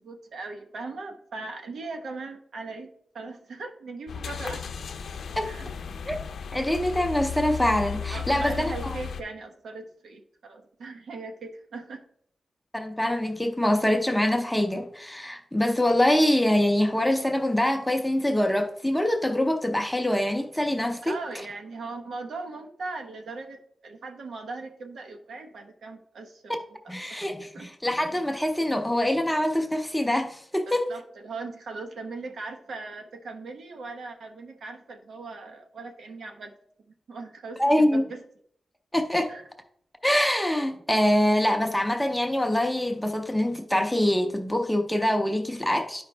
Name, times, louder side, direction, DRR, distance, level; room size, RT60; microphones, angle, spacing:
voice 1, 0.0-2.9 3.1-4.6 5.4-5.7 8.1-12.0 21.0-26.6 26.8-27.2 27.5-27.7 30.7-36.5 36.9-38.2 39.3-39.4, right 3 dB, 90° right, 1.0 m, -39 dB
sound 1, 4.1-9.2, left 6 dB, 85° left, 0.5 m, -35 dB
voice 2, 6.5-9.0 12.7-21.2 26.5-26.6 26.9-30.9 37.6-38.0 38.9-39.3 40.0-46.0, left 1 dB, 5° left, 0.5 m, -24 dB
11.5 x 4.9 x 3.3 m
wide cardioid pair, 160°, 0 cm